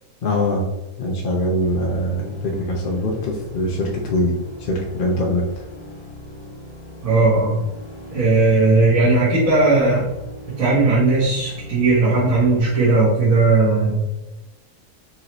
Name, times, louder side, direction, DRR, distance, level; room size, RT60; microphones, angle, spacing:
voice 1, 0.2-0.6 1.0-4.3 4.6-5.6, left 1 dB, 60° left, 0 dB, 0.5 m, -22 dB
sound 1, 1.6-13.6, left 1 dB, 20° left, 1.1 m, -39 dB
voice 2, 7.0-7.6 8.1-10.1 10.6-14.1, right 3 dB, 60° right, -9 dB, 1.7 m, -17 dB
5.6 x 2.7 x 3.0 m, 1.0 s
omnidirectional pair, 1.7 m